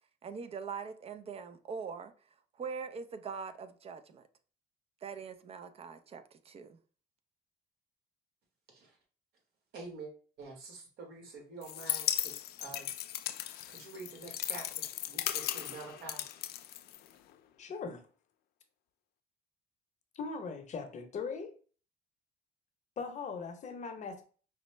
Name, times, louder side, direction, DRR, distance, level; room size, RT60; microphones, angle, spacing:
voice 1, 0.2-2.1 2.6-4.3 5.0-6.8, right 5 dB, 35° right, 0.5 m, -42 dB
voice 2, 9.7-10.1 10.4-12.3 12.6-12.9 13.7-16.2, right 3 dB, 70° right, 1.4 m, -47 dB
sound 1, 11.6-17.3, left 12 dB, 70° left, 0.4 m, -37 dB
voice 3, 17.6-18.0 20.1-21.5 23.0-24.2, left 5 dB, 45° left, 0.8 m, -39 dB
5.1 x 2.0 x 3.2 m
cardioid pair, 110°, 17 cm